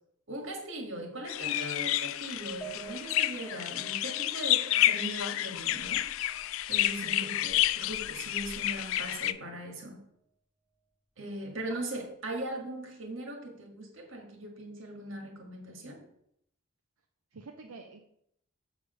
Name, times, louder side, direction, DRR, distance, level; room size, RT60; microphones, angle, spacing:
voice 1, 0.3-6.1 6.7-10.0 11.2-16.0, right 1 dB, 70° right, 2 dB, 1.7 m, -39 dB
sound 1, 1.3-9.3, left 14 dB, 70° left, 0.3 m, -30 dB
Piano, 2.6-7.1 7.4-7.6 8.0-8.1, right 9 dB, ahead, 0.5 m, -50 dB
voice 2, 7.0-7.4 17.3-18.0, right 3 dB, 90° right, 3 dB, 0.6 m, -46 dB
6.9 x 4.9 x 5.6 m, 0.73 s
head